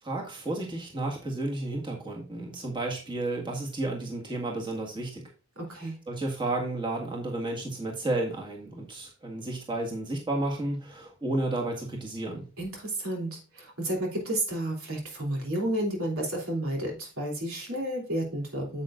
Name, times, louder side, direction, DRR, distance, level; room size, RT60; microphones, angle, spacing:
voice 1, 0.0-5.2 5.8-12.5, right 2 dB, 20° right, -1 dB, 1.7 m, -32 dB
voice 2, 5.5-6.0 12.6-18.8, right 1 dB, 85° right, 0 dB, 3.2 m, -31 dB
9.4 x 7.6 x 2.5 m, 0.33 s
head